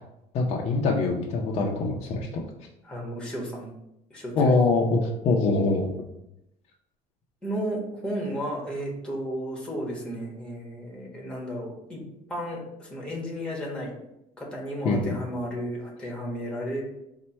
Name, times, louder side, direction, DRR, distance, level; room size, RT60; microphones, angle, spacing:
voice 1, 0.3-2.4 4.4-5.9 14.8-15.2, left 3 dB, 45° left, -1 dB, 0.5 m, -24 dB
voice 2, 2.8-3.7 4.1-4.5 7.4-12.0 12.3-13.9 14.4-16.8, equal, 5° left, -2 dB, 1.2 m, -33 dB
4.2 x 2.2 x 4.3 m, 0.84 s
cardioid pair, 130°, 14 cm